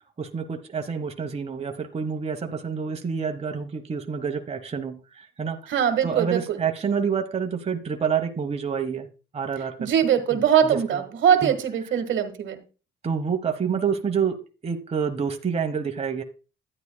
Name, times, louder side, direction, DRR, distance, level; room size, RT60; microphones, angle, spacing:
voice 1, 0.2-5.7 6.0-9.1 9.3-9.9 10.3-11.0 11.4-11.6 13.0-16.2, right 6 dB, 30° right, 6 dB, 1.1 m, -28 dB
voice 2, 5.7-6.6 9.8-12.6, right 8 dB, 75° right, 8 dB, 1.5 m, -22 dB
12.0 x 9.7 x 2.2 m, 0.33 s
cardioid pair, 90°, 20 cm